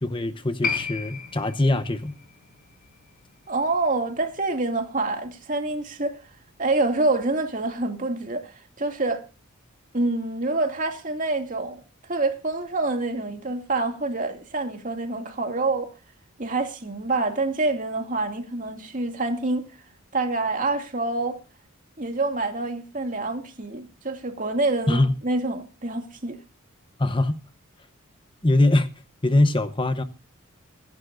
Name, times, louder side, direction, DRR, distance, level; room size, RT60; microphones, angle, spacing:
voice 1, 0.0-2.2 24.9-25.1 27.0-27.4 28.4-28.9 29.2-30.0, left 2 dB, 25° left, 0.9 m, -22 dB
Piano, 0.6-7.6 7.8-7.9, left 5 dB, 45° left, 5.3 m, -36 dB
voice 2, 3.5-6.2 6.6-9.2 9.9-11.8 12.1-15.9 16.4-19.7 20.1-21.4 22.0-26.4, right 2 dB, 40° right, 2.5 m, -26 dB
25.0 x 11.0 x 2.6 m
head